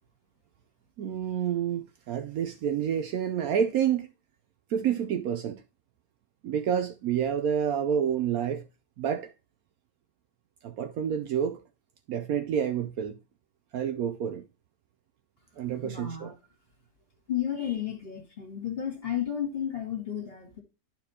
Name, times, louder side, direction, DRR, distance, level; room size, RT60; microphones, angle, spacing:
voice 1, 1.0-4.1 4.7-5.6 6.4-8.6 9.0-9.3 10.6-11.6 12.1-13.2 13.7-14.5 15.6-16.3, right 8 dB, 70° right, 1.0 m, -28 dB
voice 2, 15.8-16.3 17.3-20.6, left 9 dB, 35° left, 2.2 m, -32 dB
11.5 x 4.4 x 2.8 m
omnidirectional pair, 1.8 m